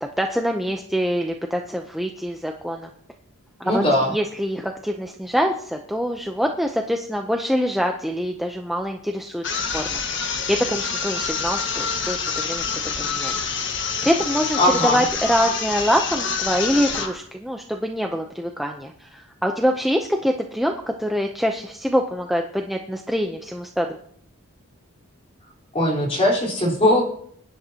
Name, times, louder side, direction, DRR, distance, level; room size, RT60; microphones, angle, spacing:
voice 1, 0.2-2.9 3.6-3.8 4.1-10.2 10.5-12.7 13.0-13.3 14.0-23.9, equal, ahead, 2 dB, 0.7 m, -25 dB
voice 2, 3.6-4.1 14.6-15.0 25.7-27.0, left 1 dB, 30° left, -3 dB, 4.2 m, -19 dB
sound 1, 9.4-17.2, left 5 dB, 55° left, 1.5 m, -27 dB
22.5 x 11.0 x 2.9 m, 0.64 s
head